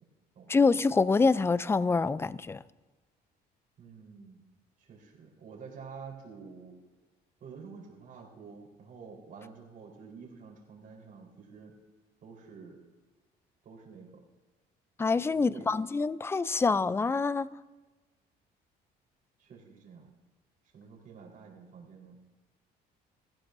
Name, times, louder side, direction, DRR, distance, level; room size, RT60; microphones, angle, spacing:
voice 1, 0.5-2.6 15.0-17.5, left 4 dB, 15° left, 0.4 m, -26 dB
voice 2, 3.8-4.4 4.8-6.8 7.4-11.7 12.2-12.8 13.6-14.2 15.3-15.8 19.4-20.1 20.7-22.2, right 5 dB, 55° right, 4.2 m, -49 dB
23.5 x 15.5 x 2.7 m
cardioid pair, 110°, 17 cm